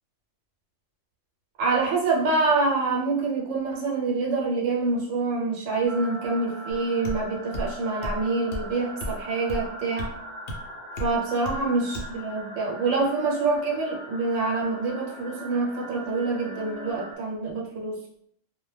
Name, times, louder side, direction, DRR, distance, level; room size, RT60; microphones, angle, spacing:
voice 1, 1.6-10.2 11.0-18.0, right 3 dB, 90° right, -2 dB, 1.0 m, -26 dB
sound 1, 5.8-17.2, right 1 dB, 45° right, 0.6 m, -41 dB
sound 2, 6.7-6.8 7.0-7.2 7.5-7.7 8.0-8.2 8.5-8.7 9.0-9.2 9.5-9.7 10.0-10.1 10.5-10.6 11.0-11.1 11.5-11.6 11.9-12.1, equal, 65° left, 0.7 m, -32 dB
2.1 x 2.1 x 3.1 m, 0.67 s
omnidirectional pair, 1.3 m